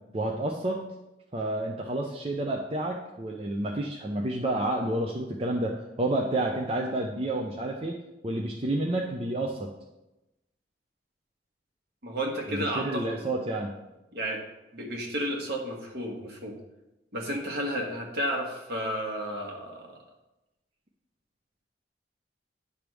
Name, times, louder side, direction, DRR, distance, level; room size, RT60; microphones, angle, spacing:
voice 1, 0.1-0.9 1.3-7.9 8.2-9.7 12.5-13.7, right 1 dB, 35° right, 0 dB, 0.6 m, -30 dB
voice 2, 12.0-13.2 14.1-14.4 14.7-16.5 17.1-20.0, equal, 60° right, 0 dB, 1.5 m, -32 dB
9.9 x 3.5 x 6.1 m, 0.99 s
head